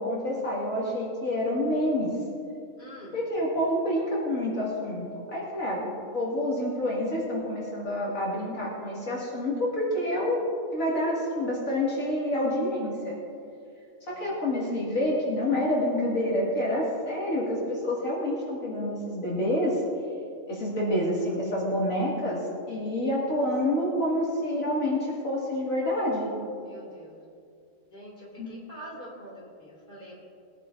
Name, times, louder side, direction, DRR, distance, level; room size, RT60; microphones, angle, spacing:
voice 1, 0.0-2.1 3.1-10.4 10.7-13.2 14.1-19.8 20.5-22.4 22.7-26.3 28.4-28.5, left 1 dB, 80° left, -6 dB, 3.0 m, -28 dB
voice 2, 2.8-3.2 14.1-14.5 26.6-27.2 27.9-30.1, equal, 40° left, -5 dB, 3.2 m, -45 dB
21.0 x 10.5 x 2.8 m, 2.4 s
omnidirectional pair, 1.4 m